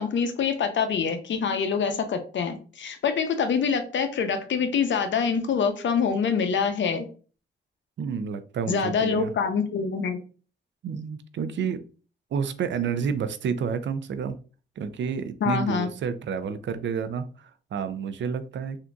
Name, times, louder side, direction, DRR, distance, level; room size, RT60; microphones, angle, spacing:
voice 1, 0.0-7.1 8.7-10.2 15.4-15.9, left 6 dB, 65° left, 8 dB, 0.6 m, -25 dB
voice 2, 8.0-9.3 10.8-11.8 12.3-14.4 14.8-18.8, right 6 dB, 65° right, 11 dB, 0.4 m, -30 dB
3.6 x 2.6 x 2.3 m, 0.38 s
cardioid pair, 60°, 20 cm